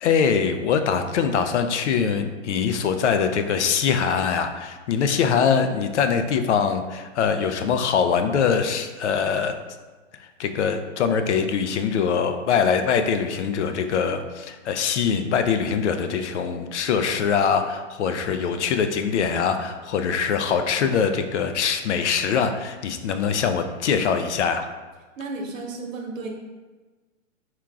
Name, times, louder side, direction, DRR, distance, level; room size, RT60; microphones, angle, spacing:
voice 1, 0.0-9.6 10.1-24.7, left 6 dB, 60° left, 8 dB, 0.5 m, -23 dB
voice 2, 25.2-26.3, right 3 dB, 80° right, 1 dB, 1.0 m, -33 dB
4.4 x 2.5 x 3.5 m, 1.3 s
hypercardioid pair, 155°, 39 cm